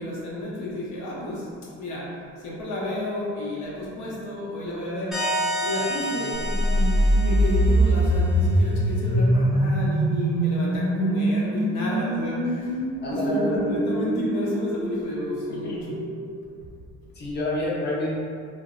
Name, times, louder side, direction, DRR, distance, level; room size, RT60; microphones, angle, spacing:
voice 1, 0.0-1.5 1.8-5.2 5.6-12.9 13.1-16.0, left 1 dB, 80° left, -5 dB, 0.6 m, -31 dB
sound 1, 5.1-8.5, right 1 dB, ahead, 0.6 m, -30 dB
sound 2, 6.4-16.4, right 1 dB, 50° right, 0.4 m, -23 dB
voice 2, 13.0-13.8 15.5-16.0 17.1-18.1, left 1 dB, 35° left, -6 dB, 0.7 m, -29 dB
2.6 x 2.0 x 2.4 m, 2.3 s
cardioid pair, 90°, 30 cm